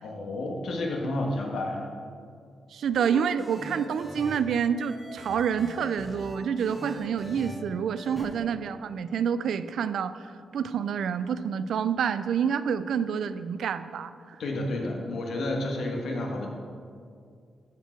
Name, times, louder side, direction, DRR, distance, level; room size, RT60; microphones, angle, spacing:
voice 1, 0.0-1.9 14.4-16.5, left 1 dB, 75° left, 1 dB, 1.4 m, -30 dB
voice 2, 2.7-10.3 10.5-14.1, right 7 dB, 80° right, 13 dB, 0.3 m, -28 dB
sound 1, 2.9-4.4 4.8-7.6 8.0-8.2, equal, 5° left, 1.4 m, -41 dB
13.5 x 4.7 x 4.5 m, 2.3 s
wide cardioid pair, 150°, 0 cm